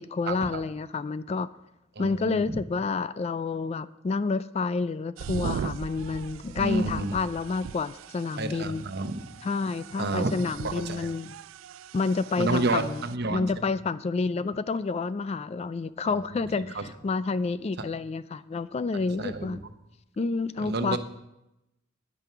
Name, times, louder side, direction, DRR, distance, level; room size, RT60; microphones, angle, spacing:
voice 1, 0.0-1.5 2.0-8.8 9.4-11.4 11.9-13.0 13.3-19.6 20.2-21.0, left 4 dB, 30° left, 15 dB, 0.3 m, -29 dB
voice 2, 2.0-2.6 6.6-7.1 8.4-9.2 10.0-10.3 10.6-11.1 12.4-13.5 16.0-16.2 16.7-16.8 18.9-19.6 20.6-21.0, right 2 dB, 55° right, 8 dB, 0.9 m, -30 dB
sound 1, 5.2-13.1, right 7 dB, 85° right, 0.3 m, -39 dB
9.8 x 9.1 x 5.8 m, 0.91 s
head